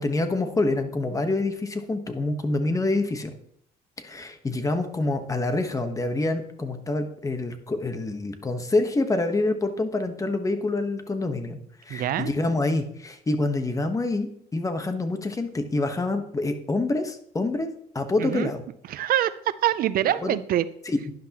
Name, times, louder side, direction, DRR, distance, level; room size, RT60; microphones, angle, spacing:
voice 1, 0.0-3.3 4.0-18.6 20.2-20.4 20.9-21.1, left 2 dB, 20° left, 7 dB, 1.1 m, -26 dB
voice 2, 11.9-12.3 18.2-18.5 18.9-20.7, right 12 dB, 60° right, 15 dB, 0.5 m, -25 dB
11.5 x 10.5 x 2.9 m, 0.69 s
cardioid pair, 110°, 17 cm